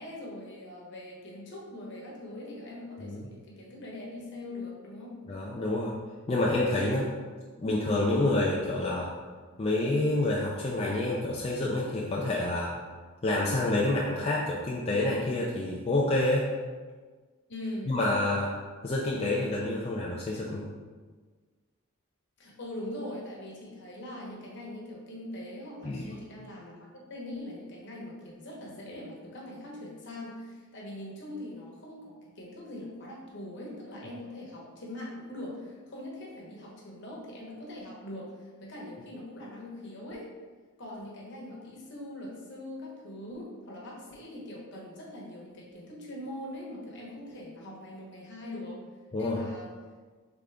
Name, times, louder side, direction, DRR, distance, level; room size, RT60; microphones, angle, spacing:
voice 1, 0.0-5.2 17.5-18.0 22.4-40.2 40.8-48.8 49.2-49.7, left 1 dB, 50° left, -3 dB, 1.0 m, -42 dB
voice 2, 5.3-5.9 6.3-7.1 7.6-9.1 9.6-12.7 13.2-16.5 17.9-18.5 18.8-20.6 25.8-26.0 49.1-49.4, left 2 dB, 25° left, -4 dB, 0.4 m, -28 dB
3.8 x 3.6 x 3.4 m, 1.4 s
head